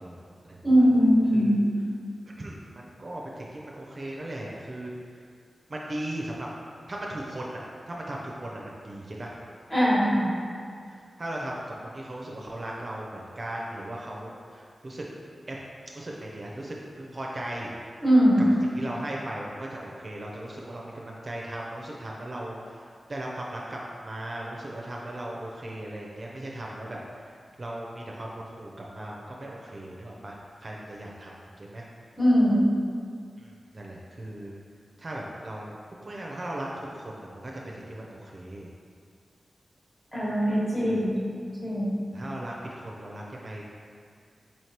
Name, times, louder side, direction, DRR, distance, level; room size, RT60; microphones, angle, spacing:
voice 1, 0.0-0.8 1.3-1.6 2.4-4.9 5.7-6.5 6.9-7.6 7.9-9.4 10.9-15.0 15.5-15.6 15.9-17.7 18.7-31.8 33.4-34.5 35.0-35.7 36.0-38.7 40.9-41.0 42.1-43.6, right 1 dB, 45° right, -3 dB, 0.5 m, -38 dB
voice 2, 0.6-1.7 9.7-10.3 18.0-18.4 32.2-32.7 40.1-42.0, equal, 20° left, -7 dB, 1.4 m, -21 dB
4.4 x 3.2 x 2.9 m, 2.2 s
cardioid pair, 45°, 0 cm